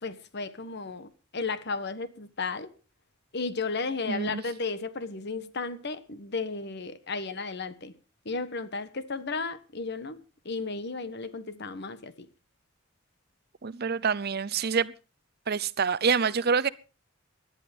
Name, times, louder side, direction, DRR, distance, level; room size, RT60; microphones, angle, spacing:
voice 1, 0.0-2.7 3.3-7.9 8.2-12.3, left 4 dB, 55° left, 1.3 m, -34 dB
voice 2, 4.1-4.4 13.6-14.9 15.5-16.7, right 5 dB, 50° right, 0.7 m, -26 dB
18.0 x 11.0 x 5.2 m
head